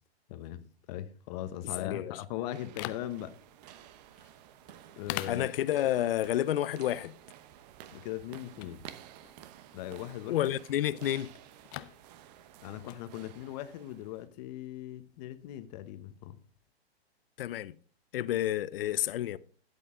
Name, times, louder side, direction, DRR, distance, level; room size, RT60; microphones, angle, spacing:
voice 1, 0.3-0.6 0.9-3.3 4.2-4.3 5.0-5.5 7.9-8.8 9.7-10.4 12.6-16.4, left 12 dB, 40° left, 1.1 m, -39 dB
voice 2, 1.8-2.2 5.2-7.2 10.3-11.3 17.4-17.7 18.1-19.4, left 12 dB, 60° left, 0.7 m, -30 dB
sound 1, 2.3-14.3, right 11 dB, 40° right, 1.0 m, -53 dB
sound 2, 2.5-16.7, left 16 dB, 20° left, 0.3 m, -48 dB
12.5 x 8.5 x 3.8 m
hypercardioid pair, 135°, 32 cm